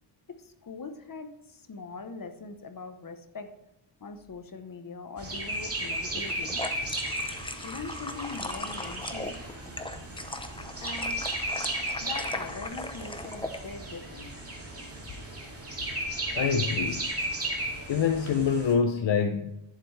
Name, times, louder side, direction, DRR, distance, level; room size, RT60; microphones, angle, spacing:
voice 1, 0.3-3.6 4.0-6.6 7.6-9.4 10.8-11.3 12.0-14.5, left 4 dB, 40° left, 1.0 m, -42 dB
sound 1, 5.2-18.7, right 1 dB, 30° right, 2.4 m, -35 dB
sound 2, 6.2-13.6, left 2 dB, 10° left, 0.6 m, -38 dB
voice 2, 16.3-17.1 17.9-19.5, left 6 dB, 65° left, 0.7 m, -26 dB
11.5 x 7.2 x 3.2 m
wide cardioid pair, 140°, 49 cm